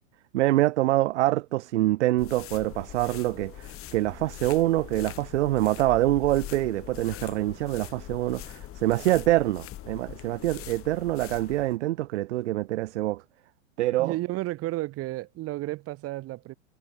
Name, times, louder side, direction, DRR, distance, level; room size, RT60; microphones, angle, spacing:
voice 1, 0.3-13.2 13.8-14.2, right 16 dB, 60° right, 0.7 m, -25 dB
sound 1, 2.2-11.7, left 13 dB, 35° left, 7.9 m, -42 dB
voice 2, 14.0-16.6, right 18 dB, 35° right, 2.6 m, -32 dB
hypercardioid pair, 100°, 39 cm